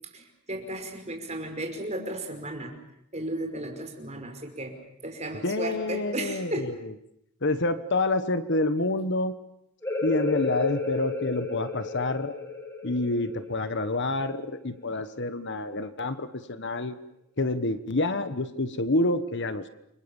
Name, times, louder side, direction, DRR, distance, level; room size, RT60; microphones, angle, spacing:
voice 1, 0.1-2.7 3.1-4.7 5.0-6.7, right 1 dB, 30° right, 4 dB, 5.4 m, -34 dB
voice 2, 5.4-6.9 7.4-9.3 10.0-12.3 12.8-17.0 17.4-19.7, left 2 dB, 55° left, 12 dB, 1.3 m, -28 dB
sound 1, 9.8-15.2, left 3 dB, 15° left, 4.9 m, -33 dB
29.5 x 25.0 x 7.2 m, 0.80 s
head